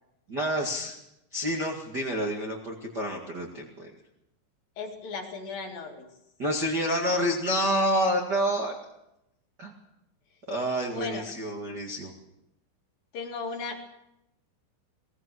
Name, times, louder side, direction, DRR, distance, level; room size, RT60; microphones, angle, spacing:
voice 1, 0.3-1.0 1.3-3.9 6.4-8.7 9.6-9.7 10.5-12.1, equal, 55° right, 1 dB, 1.1 m, -28 dB
voice 2, 4.8-6.1 10.9-11.3 13.1-13.8, left 4 dB, 50° left, 1 dB, 3.6 m, -36 dB
18.5 x 18.0 x 7.7 m, 0.86 s
omnidirectional pair, 5.7 m